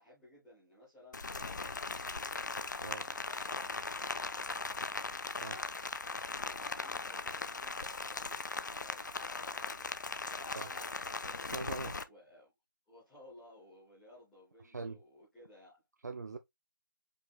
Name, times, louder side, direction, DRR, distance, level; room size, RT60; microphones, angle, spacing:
voice 1, 0.0-2.4 2.9-4.9 6.2-9.9 10.2-11.0 12.1-12.5 12.9-15.8, left 1 dB, ahead, 0.5 m, -58 dB
Rain, 1.1-12.0, left 3 dB, 60° left, 0.5 m, -39 dB
voice 2, 11.5-12.0 14.6-15.0 16.0-16.4, right 4 dB, 55° right, 0.6 m, -41 dB
5.2 x 2.6 x 3.4 m
figure-of-eight pair, 175°, 11 cm